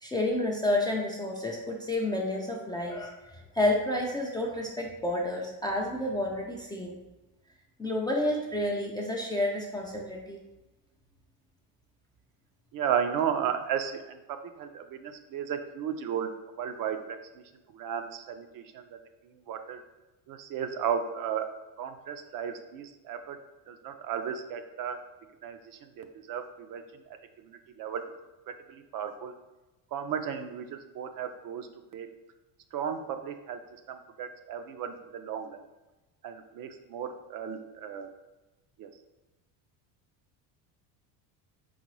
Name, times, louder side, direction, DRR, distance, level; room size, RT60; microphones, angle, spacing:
voice 1, 0.0-7.0 7.8-10.4, left 1 dB, 10° left, -2 dB, 0.3 m, -30 dB
voice 2, 12.7-14.2 14.6-16.3 16.6-17.2 17.7-19.0 19.5-19.8 20.3-21.5 21.8-23.4 23.7-25.0 25.4-25.6 26.0-26.8 27.5-28.0 28.7-29.3 29.9-31.7 31.9-32.1 32.7-33.6 33.9-35.6 36.2-38.1 38.8-38.9, right 8 dB, 50° right, 7 dB, 0.5 m, -34 dB
3.9 x 3.7 x 3.1 m, 1.0 s
supercardioid pair, 105°, 44 cm